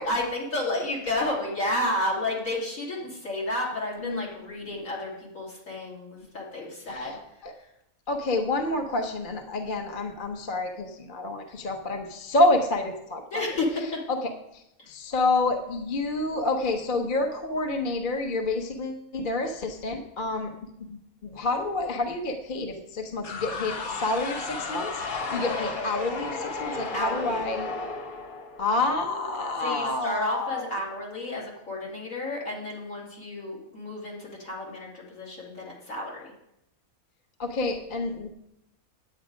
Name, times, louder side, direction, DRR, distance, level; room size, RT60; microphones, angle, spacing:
voice 1, 0.0-7.2 13.3-14.0 14.8-14.9 20.3-20.6 26.9-27.4 29.6-36.3, left 1 dB, 70° left, -4 dB, 3.2 m, -31 dB
voice 2, 8.1-13.4 14.1-14.2 14.5-24.9 25.3-27.7 28.6-30.6 37.4-38.3, left 2 dB, 40° left, 4 dB, 1.0 m, -28 dB
sound 1, 23.2-29.0, left 3 dB, 90° left, 1.5 m, -33 dB
9.4 x 8.8 x 5.0 m, 0.81 s
omnidirectional pair, 1.5 m